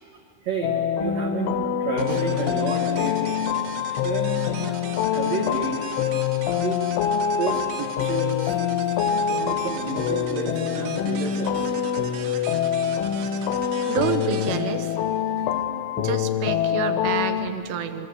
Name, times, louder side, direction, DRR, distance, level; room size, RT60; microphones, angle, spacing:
voice 1, 0.4-3.5 4.0-4.8 5.1-5.8 6.6-6.8 7.4-8.6 9.3-11.7, right 4 dB, 55° right, 1 dB, 2.0 m, -30 dB
sound 1, 0.6-17.5, left 9 dB, 85° left, 3.3 m, -25 dB
sound 2, 2.0-15.6, right 7 dB, 85° right, 4.1 m, -40 dB
voice 2, 13.9-15.0 15.4-15.5 16.0-18.1, right 7 dB, 70° right, 9 dB, 3.1 m, -28 dB
25.0 x 24.0 x 8.1 m, 2.7 s
omnidirectional pair, 5.5 m